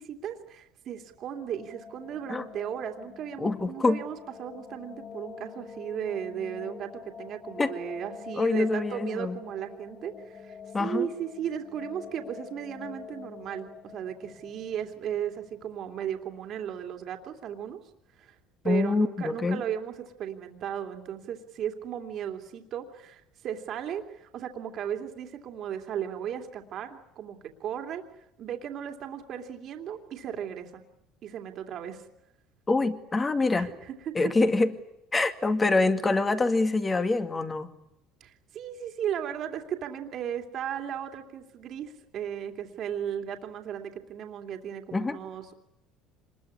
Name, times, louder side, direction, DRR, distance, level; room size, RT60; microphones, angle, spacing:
voice 1, 0.0-6.9 7.2-17.8 18.2-18.4 18.6-30.8 31.2-32.0 33.5-34.3 38.2-45.5, right 9 dB, 55° right, 4 dB, 2.8 m, -36 dB
sound 1, 1.1-16.1, left 6 dB, 45° left, 5.4 m, -46 dB
voice 2, 3.4-4.0 7.6-7.7 8.4-9.4 10.7-11.1 18.6-19.6 32.7-33.7 34.1-34.7 35.1-37.7 44.9-45.2, left 3 dB, 20° left, 8 dB, 2.2 m, -25 dB
26.0 x 21.5 x 9.8 m, 0.87 s
supercardioid pair, 110°, 0 cm